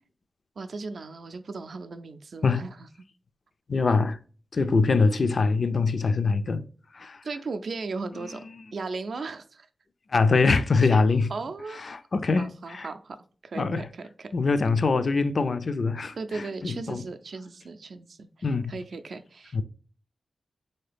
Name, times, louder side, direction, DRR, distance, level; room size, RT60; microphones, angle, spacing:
voice 1, 0.6-2.9 7.2-8.4 8.7-9.7 10.8-11.0 11.3-11.9 12.4-13.2 13.4-14.3 16.2-18.3 18.7-19.6, right 4 dB, 70° right, 0.4 m, -36 dB
voice 2, 3.7-4.2 4.5-6.6 6.9-7.2 8.1-8.3 10.1-11.3 11.7-12.9 13.6-13.9 14.3-17.0 18.4-18.7 19.5-19.6, left 4 dB, 55° left, 0.3 m, -24 dB
3.7 x 2.7 x 3.3 m
wide cardioid pair, 90°, 0 cm